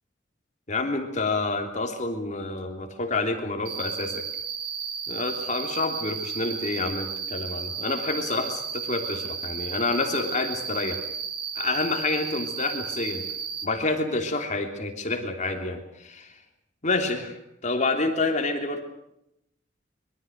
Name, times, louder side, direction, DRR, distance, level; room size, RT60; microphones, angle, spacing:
voice 1, 0.7-4.2 5.1-11.0 11.5-13.2 13.6-16.4 16.8-17.4 17.6-18.8, left 3 dB, 40° left, 4 dB, 3.2 m, -28 dB
Cricket, 3.6-13.6, right 6 dB, 60° right, 3.2 m, -33 dB
25.5 x 23.5 x 6.5 m, 0.79 s
head